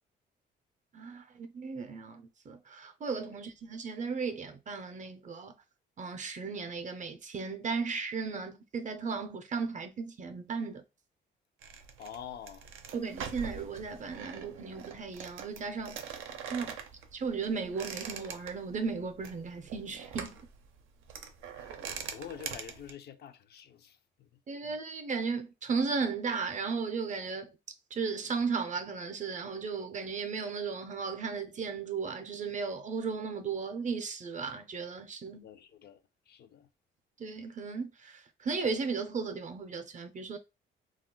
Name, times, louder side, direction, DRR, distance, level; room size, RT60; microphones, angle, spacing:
voice 1, 0.9-5.5 6.0-10.8 12.9-16.1 16.5-16.8 17.1-20.4 24.5-27.5 27.9-35.4 37.2-40.4, right 5 dB, 40° right, 0.5 m, -35 dB
sound 1, 11.6-22.9, right 7 dB, 85° right, 0.5 m, -43 dB
voice 2, 12.0-12.7 16.5-16.6 21.5-24.3 24.6-24.8 35.3-36.0 36.3-36.7, left 9 dB, 55° left, 0.4 m, -47 dB
2.3 x 2.1 x 3.7 m
cardioid pair, 90°, 20 cm